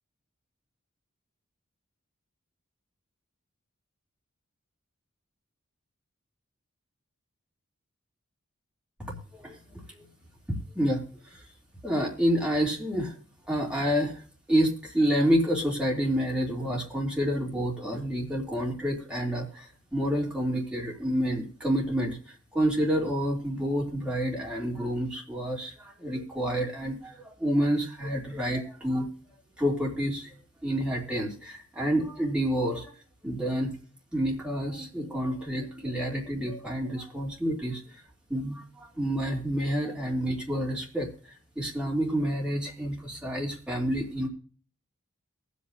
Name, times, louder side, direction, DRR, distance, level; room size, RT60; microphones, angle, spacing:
voice 1, 9.0-10.1 10.5-11.4 11.8-13.2 13.5-14.2 14.5-29.1 29.6-30.3 30.6-32.9 33.2-33.8 34.1-38.0 38.3-44.3, equal, 5° right, -2 dB, 2.6 m, -29 dB
22.5 x 8.3 x 2.6 m, 0.42 s
head